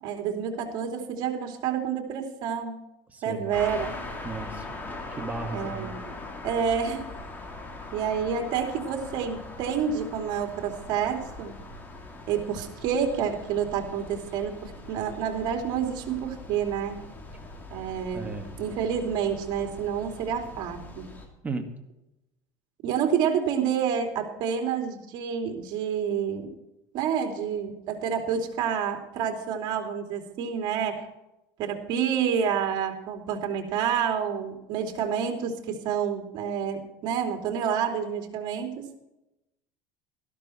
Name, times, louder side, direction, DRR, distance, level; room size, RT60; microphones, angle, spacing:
voice 1, 0.0-2.8 3.2-3.9 5.5-6.1 6.4-7.0 7.9-11.6 12.3-17.0 17.7-21.1 22.8-26.5 26.9-31.0 31.6-38.9, right 7 dB, 55° right, 4 dB, 2.8 m, -29 dB
voice 2, 3.1-3.6 4.2-4.8 5.1-5.9 18.1-18.5 21.4-21.6, right 4 dB, 15° right, 3 dB, 2.0 m, -35 dB
sound 1, 3.5-21.3, left 2 dB, 20° left, 2.6 m, -41 dB
13.5 x 12.0 x 4.4 m, 0.90 s
supercardioid pair, 130°, 9 cm